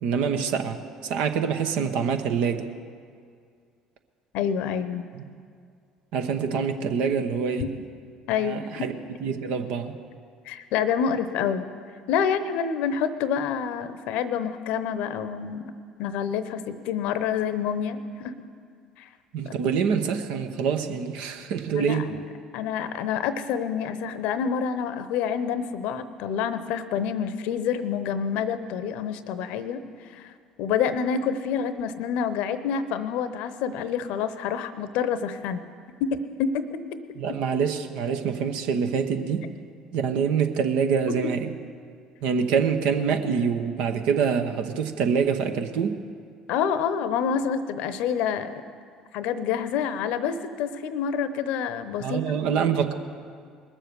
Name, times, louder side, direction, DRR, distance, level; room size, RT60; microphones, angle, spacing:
voice 1, 0.0-0.8 1.0-2.7 5.1-5.2 6.1-7.7 8.4-8.9 9.2-10.0 19.3-22.1 37.2-39.5 39.9-41.5 42.2-46.0 52.0-52.9, right 6 dB, 65° right, 7 dB, 0.9 m, -25 dB
voice 2, 4.3-5.0 7.6-7.7 8.3-8.7 10.5-11.7 12.1-15.6 16.0-18.3 19.0-19.1 19.4-19.5 21.7-22.2 22.5-29.8 30.1-30.3 30.6-35.6 36.0-37.0 41.2-41.3 46.5-48.6 49.1-52.3, left 7 dB, 65° left, 13 dB, 0.7 m, -27 dB
20.0 x 7.3 x 6.9 m, 2.2 s
hypercardioid pair, 60°, 2 cm